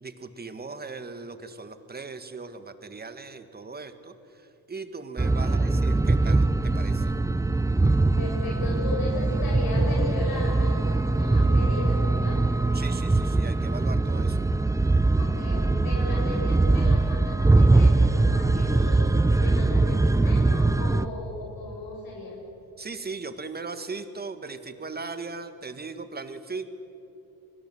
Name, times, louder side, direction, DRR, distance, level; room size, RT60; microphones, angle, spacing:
voice 1, 0.0-7.1 12.7-14.4 22.8-26.7, right 4 dB, 25° right, 10 dB, 1.7 m, -38 dB
sound 1, 5.2-21.1, right 2 dB, 10° right, 0.6 m, -22 dB
voice 2, 5.4-5.8 8.2-12.4 15.2-22.4, left 2 dB, 65° left, -2 dB, 7.2 m, -36 dB
25.0 x 20.0 x 7.8 m, 2.9 s
cardioid pair, 95°, 38 cm